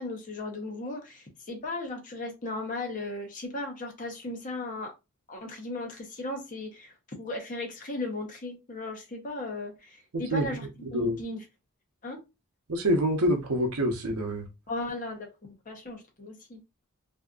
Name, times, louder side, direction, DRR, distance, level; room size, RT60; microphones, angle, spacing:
voice 1, 0.0-4.9 5.3-10.7 10.9-11.4 12.0-12.2 14.7-16.8, left 2 dB, 35° left, 0.7 m, -36 dB
voice 2, 10.1-10.5 10.9-11.2 12.7-14.5, equal, 80° right, 0.6 m, -26 dB
2.6 x 2.3 x 2.4 m
head